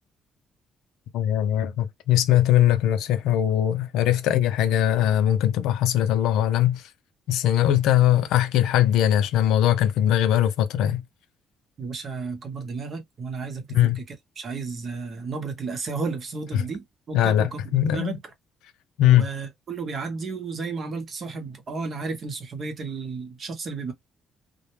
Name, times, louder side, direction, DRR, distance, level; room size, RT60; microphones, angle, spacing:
voice 1, 1.1-6.8 7.3-11.0 13.7-14.0 16.5-16.6 17.1-18.2 19.0-19.3, left 11 dB, 85° left, 0.4 m, -21 dB
voice 2, 11.8-18.2 19.0-23.9, right 4 dB, 45° right, 0.8 m, -33 dB
2.1 x 2.0 x 3.0 m
cardioid pair, 105°, 0 cm